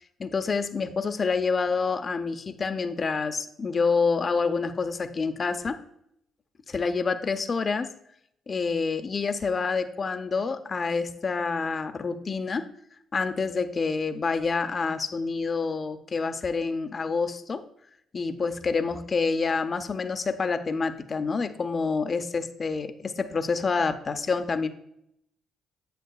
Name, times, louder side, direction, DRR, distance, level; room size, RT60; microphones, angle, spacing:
voice 1, 0.0-5.8 6.7-7.9 8.5-12.7 13.1-17.6 18.1-24.7, left 4 dB, 40° left, 9 dB, 0.6 m, -27 dB
9.2 x 7.6 x 2.3 m, 0.74 s
cardioid pair, 90°, 0 cm